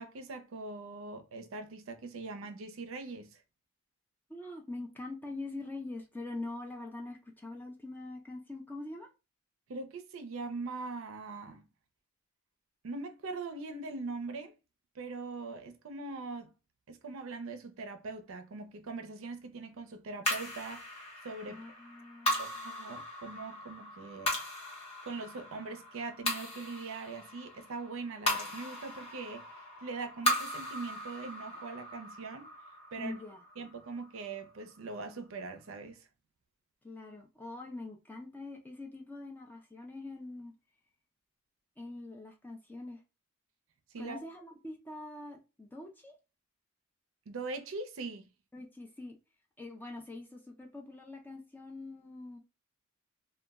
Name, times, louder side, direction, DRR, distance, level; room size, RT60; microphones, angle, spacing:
voice 1, 0.0-3.4 9.7-11.7 12.8-14.5 14.9-16.5 16.9-21.6 22.4-24.4 25.0-32.5 32.9-33.1 33.6-36.1 43.9-44.2 47.3-48.3, right 3 dB, 70° right, 0.4 m, -42 dB
voice 2, 4.3-9.1 21.5-22.5 33.0-33.4 36.8-40.5 41.8-43.0 44.0-46.1 48.5-49.2 49.6-52.4, left 2 dB, 10° left, 0.4 m, -44 dB
sound 1, 20.2-34.8, left 1 dB, 30° left, 0.8 m, -38 dB
2.2 x 2.0 x 3.4 m
head